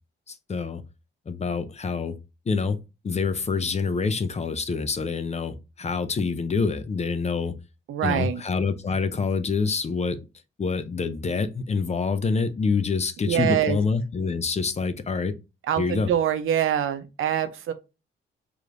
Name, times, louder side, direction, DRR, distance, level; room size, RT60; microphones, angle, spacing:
voice 1, 0.3-0.8 1.3-2.2 2.5-2.8 3.0-7.5 8.0-10.2 10.6-15.3 15.8-16.1, left 4 dB, 30° left, 0.6 m, -26 dB
voice 2, 7.9-8.4 13.3-13.8 15.7-17.7, right 10 dB, 75° right, 0.7 m, -24 dB
4.8 x 3.1 x 2.5 m
cardioid pair, 100°, 21 cm